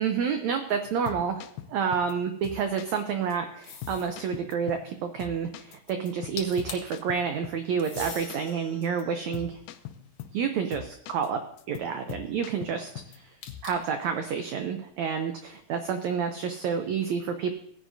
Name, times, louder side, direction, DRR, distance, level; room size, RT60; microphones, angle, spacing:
voice 1, 0.0-9.6 10.3-11.4 11.7-13.3 13.6-17.5, right 6 dB, 85° right, 6 dB, 1.6 m, -29 dB
sound 1, 0.9-2.1 2.4-3.0 3.3-3.4 3.8-4.9 5.2-7.7 8.0-8.5 8.8-9.0 9.3-10.4 10.7-11.3 11.6-13.2 13.5-13.8, left 11 dB, 90° left, 2.4 m, -42 dB
sound 2, 3.6-4.2 6.1-6.2 6.4-7.0 7.8-8.3 9.0-10.5 13.4-14.0, left 7 dB, 65° left, 2.2 m, -42 dB
sound 3, 8.0-9.3, right 3 dB, 45° right, 2.8 m, -43 dB
18.0 x 10.0 x 2.7 m, 0.65 s
omnidirectional pair, 4.1 m